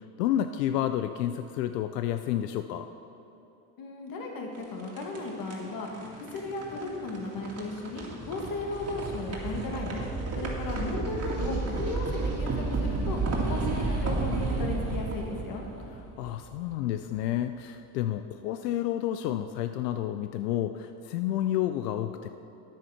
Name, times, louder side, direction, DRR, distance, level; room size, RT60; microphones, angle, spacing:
voice 1, 0.2-2.9 16.2-22.3, left 12 dB, 90° left, 9 dB, 0.6 m, -30 dB
voice 2, 3.8-5.9 6.2-10.0 10.4-12.5 12.8-13.2 13.5-15.6, left 2 dB, 45° left, 0 dB, 2.1 m, -35 dB
sound 1, 4.5-16.6, right 3 dB, 30° right, 2.2 m, -32 dB
9.3 x 8.8 x 5.7 m, 2.9 s
supercardioid pair, 100°, 47 cm